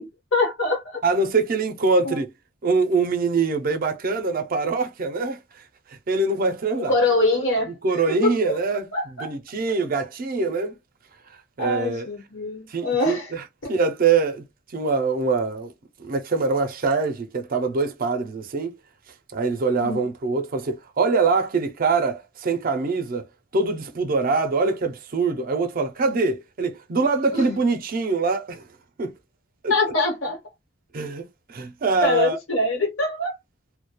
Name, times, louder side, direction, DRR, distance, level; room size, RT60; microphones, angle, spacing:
voice 1, 0.0-1.0 2.0-2.2 6.8-7.7 8.1-9.3 11.6-13.3 13.6-13.8 19.8-20.1 27.3-27.5 29.7-30.4 32.0-33.4, left 2 dB, 75° left, 1.0 m, -24 dB
voice 2, 1.0-2.3 2.6-5.6 5.9-7.0 7.6-10.7 11.6-12.1 12.7-14.4 14.7-15.7 16.0-18.8 19.3-23.3 23.5-28.6 29.0-29.1 29.6-29.8 30.9-32.4, right 4 dB, 45° right, 0.4 m, -24 dB
2.3 x 2.1 x 2.8 m
head